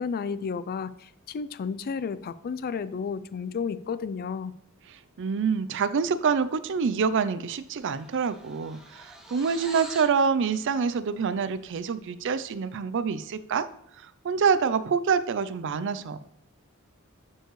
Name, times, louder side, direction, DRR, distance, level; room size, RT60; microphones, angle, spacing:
voice 1, 0.0-4.5, left 5 dB, 45° left, 15 dB, 0.3 m, -32 dB
voice 2, 5.2-13.7 14.0-16.2, right 6 dB, 60° right, 13 dB, 0.4 m, -26 dB
sound 1, 7.5-10.2, right 1 dB, 5° right, 1.0 m, -45 dB
11.5 x 4.6 x 3.1 m, 0.74 s
head